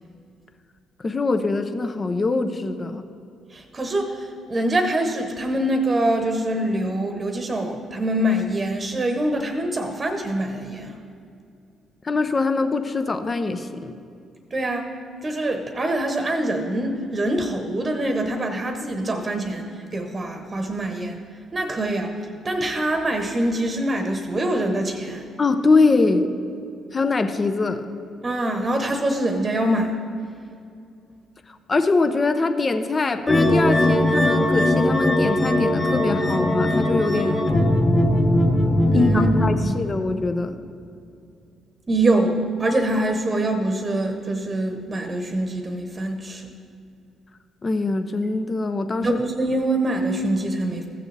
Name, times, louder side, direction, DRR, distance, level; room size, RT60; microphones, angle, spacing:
voice 1, 1.0-3.1 12.0-13.9 25.4-26.3 26.9-27.9 31.7-37.5 38.9-40.6 47.6-49.2, left 3 dB, 35° left, 8 dB, 0.7 m, -23 dB
voice 2, 3.5-11.0 14.5-14.9 15.2-21.2 21.5-22.1 22.4-25.2 28.2-29.9 38.9-39.3 39.6-39.8 41.9-46.5 49.0-50.9, right 1 dB, 35° right, 5 dB, 1.1 m, -24 dB
sound 1, 33.3-39.5, left 1 dB, 20° left, 1.5 m, -19 dB
15.0 x 6.9 x 3.4 m, 2.5 s
hypercardioid pair, 50°, 0 cm